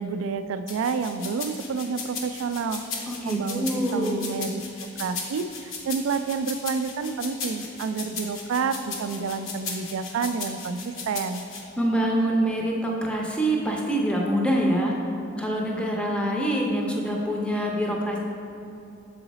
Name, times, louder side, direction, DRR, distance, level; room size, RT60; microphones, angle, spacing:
voice 1, 0.0-2.8 3.3-3.7 3.9-4.6 5.0-11.4, right 5 dB, 80° right, 11 dB, 0.3 m, -29 dB
sound 1, 0.7-11.6, left 4 dB, 80° left, 0.8 m, -36 dB
voice 2, 3.1-4.2 11.8-14.9 15.4-18.2, right 1 dB, 5° left, -1 dB, 0.5 m, -25 dB
7.0 x 3.9 x 4.0 m, 2.8 s
head